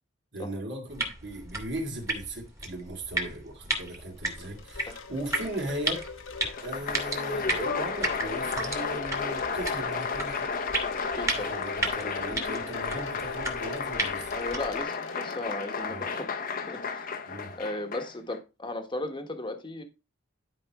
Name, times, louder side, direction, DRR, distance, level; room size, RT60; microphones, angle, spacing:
voice 1, 0.3-6.0 6.6-10.5 11.3-14.4 15.9-16.1 17.3-17.5, right 1 dB, 60° right, 2.6 m, -38 dB
sound 1, 0.9-14.8, right 2 dB, 15° right, 1.9 m, -35 dB
Wind chime, 3.9-16.1, left 5 dB, 80° left, 1.3 m, -43 dB
Applause, 6.5-18.4, left 5 dB, 45° left, 1.0 m, -33 dB
voice 2, 11.2-11.5 14.3-16.3 16.7-17.1 17.5-19.8, left 2 dB, 25° left, 1.4 m, -36 dB
11.5 x 4.9 x 3.6 m
head